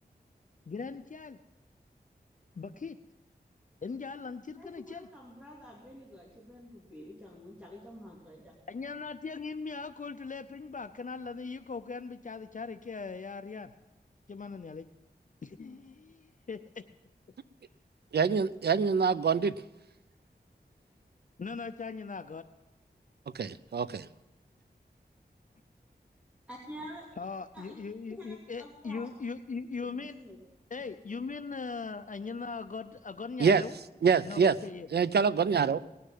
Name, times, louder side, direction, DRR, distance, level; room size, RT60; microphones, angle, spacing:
voice 1, 0.7-1.4 2.6-3.0 3.8-5.1 8.7-13.7 14.3-14.9 15.4-16.9 21.4-22.5 27.2-30.2 30.7-33.8 34.2-34.9, left 4 dB, 50° left, 9 dB, 0.6 m, -39 dB
voice 2, 4.6-8.5 26.5-27.1 27.5-27.7 28.1-29.1 29.8-30.4, equal, 5° right, -4 dB, 2.9 m, -48 dB
voice 3, 18.1-19.5 23.3-24.1 33.4-33.6 34.0-34.6 34.9-35.8, right 6 dB, 80° right, 16 dB, 0.5 m, -25 dB
19.0 x 6.7 x 9.3 m, 0.97 s
wide cardioid pair, 65°, 17 cm